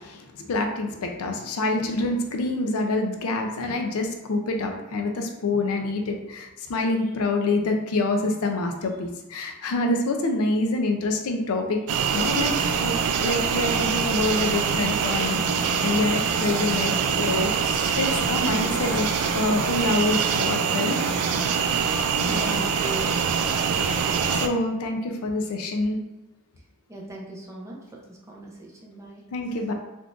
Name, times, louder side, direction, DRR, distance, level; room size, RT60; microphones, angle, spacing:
voice 1, 0.0-11.8 12.1-12.9 13.2-15.4 15.8-17.5 17.9-21.0 24.1-26.0 29.3-29.7, left 2 dB, 80° left, 3 dB, 0.5 m, -26 dB
sound 1, 11.9-24.5, right 6 dB, 80° right, 0.3 m, -24 dB
voice 2, 22.3-23.4 26.9-29.2, right 1 dB, 15° right, -3 dB, 0.5 m, -38 dB
3.6 x 2.5 x 2.4 m, 1.0 s
head